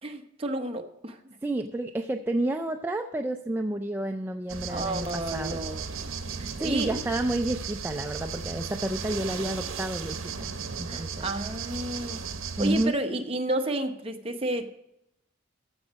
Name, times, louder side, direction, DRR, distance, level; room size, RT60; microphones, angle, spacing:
voice 1, 0.0-1.4 4.7-6.1 6.3-7.0 10.9-12.2 12.6-14.7, right 1 dB, 30° right, 5 dB, 0.8 m, -31 dB
voice 2, 1.4-5.6 6.6-11.3 12.6-12.9, right 1 dB, 10° right, 5 dB, 0.3 m, -30 dB
sound 1, 4.5-12.9, right 5 dB, 75° right, 0.9 m, -35 dB
14.5 x 5.3 x 6.2 m, 0.85 s
head